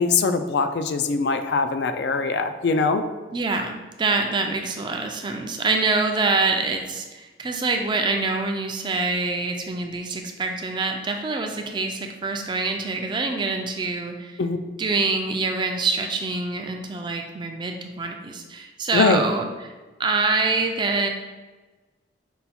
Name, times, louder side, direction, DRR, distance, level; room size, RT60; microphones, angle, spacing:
voice 1, 0.0-3.0 14.4-14.6 18.9-19.2, left 4 dB, 60° left, 8 dB, 0.3 m, -22 dB
voice 2, 3.3-14.4 14.8-19.7 20.0-21.1, right 3 dB, 25° right, 3 dB, 0.3 m, -25 dB
5.4 x 2.3 x 4.2 m, 1.2 s
head